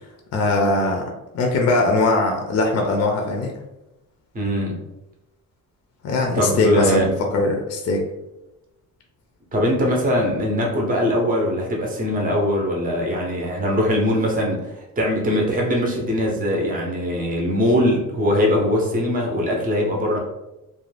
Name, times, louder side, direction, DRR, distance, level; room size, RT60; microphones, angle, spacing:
voice 1, 0.3-3.5 6.0-8.0, left 2 dB, 45° left, 1 dB, 0.4 m, -21 dB
voice 2, 4.3-4.8 6.3-7.1 9.5-20.2, equal, 25° right, -1 dB, 0.6 m, -21 dB
2.4 x 2.2 x 3.2 m, 0.93 s
wide cardioid pair, 150°, 35 cm